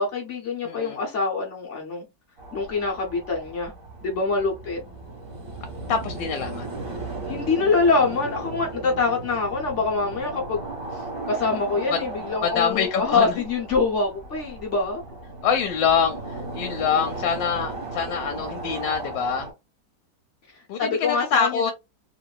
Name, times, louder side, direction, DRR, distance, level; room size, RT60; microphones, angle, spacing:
voice 1, 0.0-2.0 2.5-3.7 4.0-4.8 7.3-10.6 11.3-15.0 20.8-21.7, left 4 dB, 55° left, 0.8 m, -24 dB
voice 2, 0.6-1.0 5.9-6.7 11.9-12.0 12.4-13.4 15.4-19.5 20.7-21.7, left 7 dB, 85° left, 1.3 m, -25 dB
sound 1, 2.4-19.5, right 2 dB, 35° right, 1.4 m, -36 dB
3.0 x 2.9 x 2.3 m
omnidirectional pair, 1.9 m